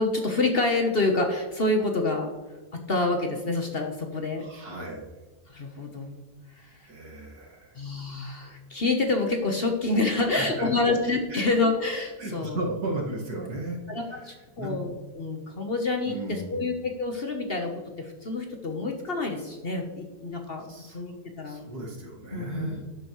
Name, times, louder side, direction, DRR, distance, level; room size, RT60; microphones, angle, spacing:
voice 1, 0.0-2.3 2.7-4.4 5.5-6.3 6.6-6.7 7.8-12.6 13.9-17.7 18.0-21.6 22.3-22.8, left 2 dB, 40° left, 3 dB, 1.1 m, -27 dB
voice 2, 4.3-5.1 6.9-7.8 10.2-10.9 11.3-11.4 12.2-13.8 14.1-14.8 16.0-16.7 20.6-21.0 21.4-22.8, right 2 dB, 75° right, -2 dB, 2.5 m, -35 dB
12.0 x 9.2 x 3.1 m, 1.3 s
omnidirectional pair, 1.7 m